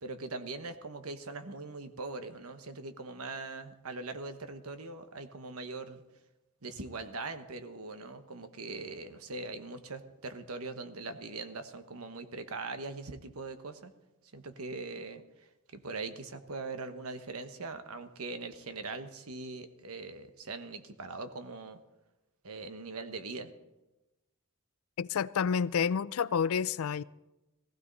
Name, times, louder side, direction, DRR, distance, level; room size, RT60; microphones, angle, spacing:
voice 1, 0.0-6.0 6.6-13.9 14.3-15.2 15.7-21.8 22.4-23.5, right 3 dB, 80° right, 1.2 m, -41 dB
voice 2, 25.0-27.0, left 7 dB, 70° left, 0.4 m, -29 dB
17.0 x 15.5 x 4.1 m
head